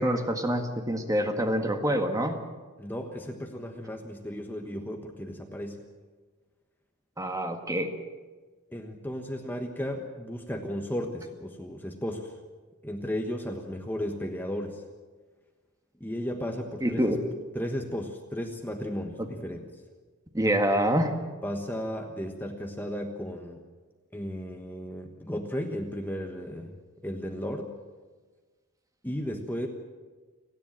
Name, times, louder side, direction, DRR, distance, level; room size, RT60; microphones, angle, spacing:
voice 1, 0.0-2.4 7.2-7.9 16.8-17.2 19.2-19.3 20.3-21.1, equal, 15° right, 5 dB, 1.7 m, -26 dB
voice 2, 2.8-5.8 8.7-12.3 12.8-14.8 16.0-17.1 17.5-19.8 21.4-23.7 24.1-26.7 27.0-27.7 29.0-29.7, equal, 10° left, 3 dB, 1.2 m, -34 dB
29.5 x 10.5 x 8.9 m, 1.4 s
head